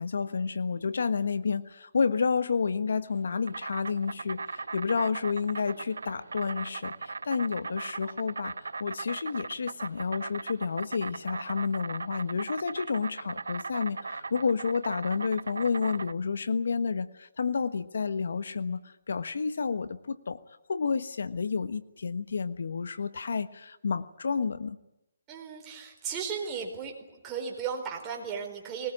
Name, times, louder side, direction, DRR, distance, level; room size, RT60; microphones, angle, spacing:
voice 1, 0.0-20.4 20.7-24.8, left 5 dB, 70° left, 13 dB, 1.3 m, -30 dB
Insect, 3.1-16.1, right 4 dB, 85° right, 0.9 m, -39 dB
voice 2, 25.3-26.9 27.2-28.9, right 6 dB, 15° right, 1 dB, 4.4 m, -35 dB
21.5 x 20.0 x 9.9 m, 0.88 s
hypercardioid pair, 165°, 0 cm